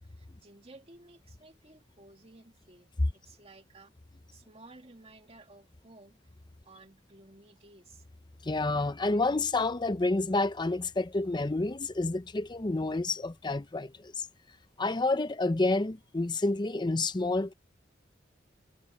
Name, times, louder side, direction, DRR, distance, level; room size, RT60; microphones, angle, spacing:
voice 1, 0.0-2.9 3.2-3.9 4.3-6.2 6.6-8.1, right 2 dB, 35° right, 2.1 m, -55 dB
voice 2, 8.4-14.3 14.8-17.5, left 2 dB, 25° left, 0.6 m, -29 dB
head